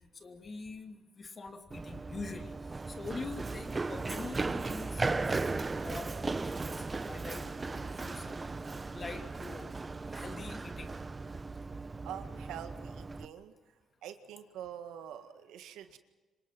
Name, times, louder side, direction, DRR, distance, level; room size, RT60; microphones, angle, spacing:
voice 1, 0.2-2.5 2.9-6.8 7.1-8.5 8.9-9.7 10.1-10.9, left 3 dB, 35° left, 6 dB, 2.7 m, -45 dB
Run, 1.7-13.3, right 3 dB, 25° right, 1.0 m, -37 dB
voice 2, 12.0-13.5 14.0-16.0, right 10 dB, 90° right, 8 dB, 1.8 m, -45 dB
26.5 x 24.0 x 6.1 m, 1.2 s
cardioid pair, 90°, 0 cm